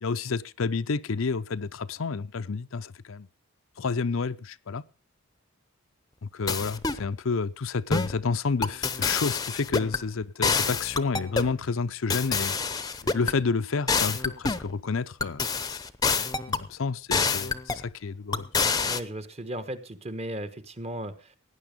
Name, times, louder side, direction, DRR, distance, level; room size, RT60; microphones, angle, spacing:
voice 1, 0.0-3.3 3.8-4.8 6.2-12.6 13.0-15.5 16.5-18.5, left 4 dB, 65° left, 0.6 m, -30 dB
sound 1, 6.5-7.0 7.9-8.2 8.6-10.0 10.4-11.5 12.1-13.4 13.9-14.7 15.2-16.7 17.1-17.9 18.3-19.0, left 4 dB, 20° left, 0.7 m, -27 dB
voice 2, 18.8-21.4, right 1 dB, 30° right, 1.2 m, -36 dB
17.5 x 9.7 x 5.1 m
head